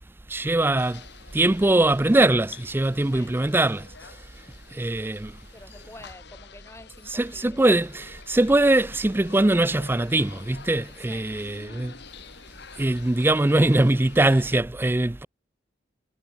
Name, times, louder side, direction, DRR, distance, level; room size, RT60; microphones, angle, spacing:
voice 1, 0.3-1.0 1.3-3.9 4.7-5.3 7.1-11.9 12.8-15.3, right 2 dB, 10° right, 0.4 m, -22 dB
sound 1, 0.8-14.6, left 6 dB, 65° left, 1.5 m, -48 dB
voice 2, 5.5-7.7 11.1-11.3, left 2 dB, 15° left, 3.2 m, -47 dB
head